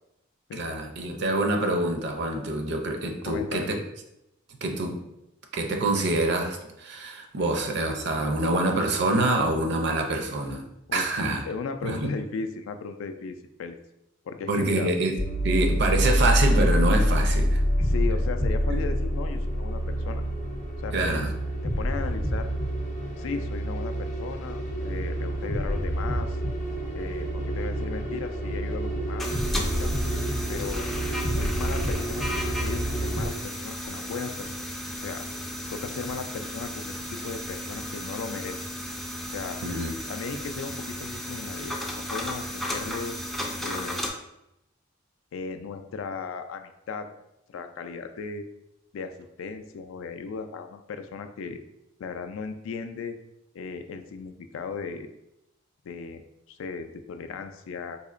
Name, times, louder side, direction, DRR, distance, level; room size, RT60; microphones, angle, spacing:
voice 1, 0.5-3.8 4.6-5.0 5.5-10.6 10.9-11.4 11.8-12.1 14.5-17.6 18.7-18.8 20.9-21.3 39.6-39.9, right 2 dB, 55° right, 4 dB, 0.5 m, -26 dB
voice 2, 3.3-3.9 10.9-11.0 11.4-13.8 14.2-14.9 17.8-20.2 20.8-21.2 21.6-22.5 23.2-26.4 27.0-29.9 30.5-30.9 31.4-34.5 35.0-35.2 35.7-38.6 39.3-39.6 40.1-43.2 43.6-44.0 45.3-47.1 47.5-48.4 48.9-51.6 52.0-53.2 53.5-55.1 55.8-56.2 56.5-58.0, left 5 dB, 80° left, 8 dB, 0.3 m, -36 dB
sound 1, 15.2-33.3, equal, 35° left, 0.7 m, -27 dB
sound 2, 29.2-44.1, left 1 dB, ahead, 0.3 m, -34 dB
4.1 x 2.8 x 2.4 m, 0.86 s
head